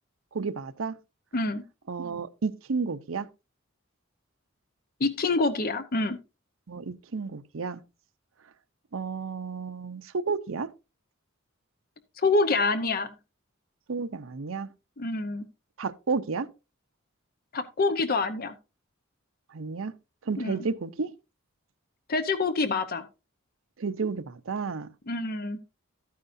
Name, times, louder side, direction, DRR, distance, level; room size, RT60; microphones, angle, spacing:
voice 1, 0.3-0.9 1.9-3.3 6.7-7.8 8.9-10.7 13.9-14.7 15.8-16.5 19.5-19.9 20.2-21.1 23.8-24.9, right 4 dB, 70° right, 0.7 m, -31 dB
voice 2, 5.0-6.2 12.2-13.1 15.0-15.5 17.5-18.5 20.4-20.7 22.1-23.1 25.1-25.6, left 3 dB, 45° left, 0.8 m, -26 dB
12.5 x 9.4 x 2.6 m
head